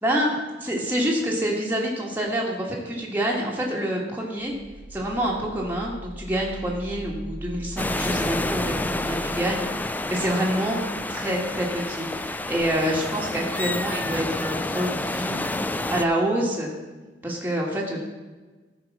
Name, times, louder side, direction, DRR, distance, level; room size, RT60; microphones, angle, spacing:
voice 1, 0.0-4.5 4.9-10.8 11.1-15.4 15.9-16.7 17.2-18.0, equal, 10° right, -3 dB, 1.5 m, -27 dB
sound 1, 4.4-11.0, equal, 80° right, 1.3 m, -40 dB
sound 2, 7.8-16.1, left 2 dB, 10° left, 0.3 m, -29 dB
13.5 x 4.8 x 5.9 m, 1.3 s
head